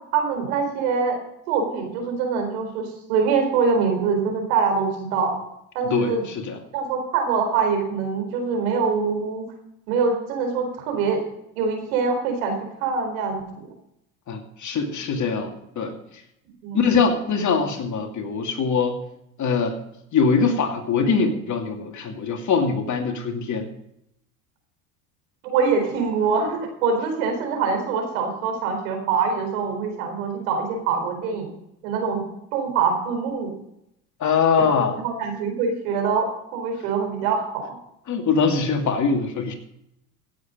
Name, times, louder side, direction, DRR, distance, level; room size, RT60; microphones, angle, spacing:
voice 1, 0.1-1.2 1.5-5.3 5.7-6.2 6.7-9.4 9.9-11.2 11.6-13.7 16.6-16.8 25.4-31.5 31.8-32.2 32.5-33.5 35.0-37.7, right 5 dB, 75° right, 4 dB, 4.3 m, -24 dB
voice 2, 5.9-6.6 14.3-16.0 16.7-19.0 19.4-19.8 20.1-23.7 34.2-35.0 38.1-39.5, left 5 dB, 40° left, 3 dB, 2.6 m, -22 dB
16.5 x 7.8 x 5.2 m, 0.79 s
hypercardioid pair, 90°, 43 cm